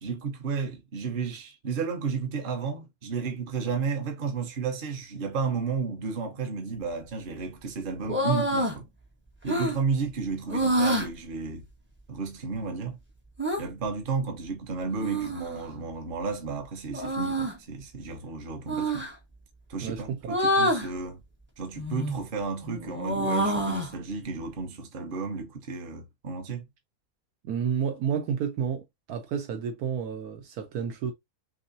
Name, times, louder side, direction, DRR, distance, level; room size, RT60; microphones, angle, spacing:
voice 1, 0.0-8.8 9.4-11.6 12.1-13.0 13.6-19.1 19.7-21.2 21.6-26.6, right 5 dB, 40° right, 0.9 m, -32 dB
sound 1, 8.0-8.8 9.5-9.8 10.5-11.1 13.4-13.6 15.0-15.6 16.9-17.6 18.7-19.1 20.3-20.9 21.8-22.3 22.7-23.9, equal, 10° right, 0.6 m, -27 dB
voice 2, 19.8-20.2 27.4-31.1, right 7 dB, 80° right, 1.2 m, -30 dB
6.2 x 2.1 x 2.6 m
omnidirectional pair, 1.6 m